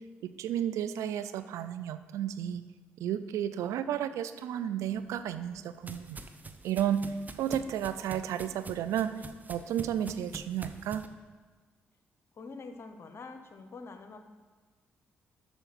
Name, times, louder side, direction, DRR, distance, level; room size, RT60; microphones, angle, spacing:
voice 1, 0.2-2.6 3.0-6.2 6.6-9.2 9.5-11.0, right 10 dB, 75° right, 12 dB, 0.4 m, -32 dB
sound 1, 4.9-11.1, right 3 dB, 30° right, 0.7 m, -46 dB
voice 2, 12.3-14.2, left 4 dB, 55° left, 7 dB, 0.9 m, -45 dB
7.1 x 6.4 x 6.0 m, 1.4 s
hypercardioid pair, 50°, 5 cm